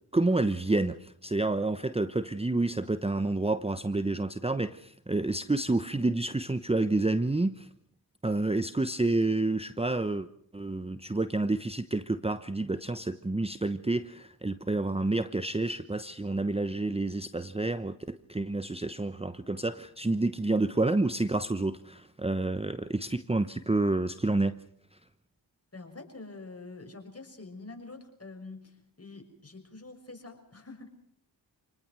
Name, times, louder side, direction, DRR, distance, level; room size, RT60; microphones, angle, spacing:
voice 1, 0.1-7.7 8.2-10.3 10.5-24.6, right 2 dB, 15° right, 13 dB, 0.9 m, -29 dB
voice 2, 25.7-30.9, left 3 dB, 30° left, 4 dB, 6.3 m, -46 dB
27.5 x 19.0 x 6.2 m, 0.66 s
supercardioid pair, 40°, 45 cm